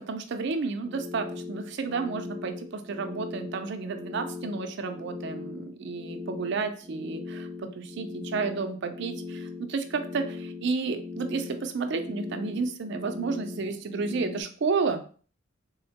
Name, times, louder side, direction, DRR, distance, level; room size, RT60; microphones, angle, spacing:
voice 1, 0.0-15.1, right 4 dB, 60° right, 7 dB, 0.4 m, -31 dB
sound 1, 0.8-14.4, left 4 dB, 30° left, 0.8 m, -40 dB
3.7 x 2.1 x 2.8 m, 0.41 s
head